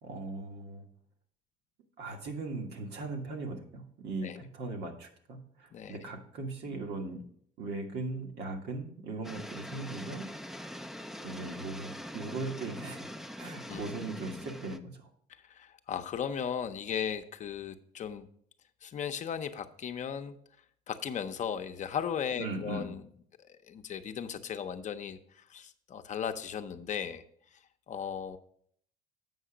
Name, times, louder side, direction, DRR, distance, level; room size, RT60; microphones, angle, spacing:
voice 1, 0.0-0.8 2.0-7.2 7.6-10.3 11.2-13.1 13.4-15.1 22.4-22.9, right 3 dB, 75° right, 2 dB, 1.6 m, -39 dB
sound 1, 9.2-14.8, equal, ahead, 0.4 m, -43 dB
voice 2, 15.3-18.3 18.8-20.4 20.9-23.0 23.5-27.2 27.9-28.4, left 8 dB, 45° left, 8 dB, 0.7 m, -36 dB
7.9 x 5.6 x 5.0 m, 0.63 s
cardioid pair, 110°, 17 cm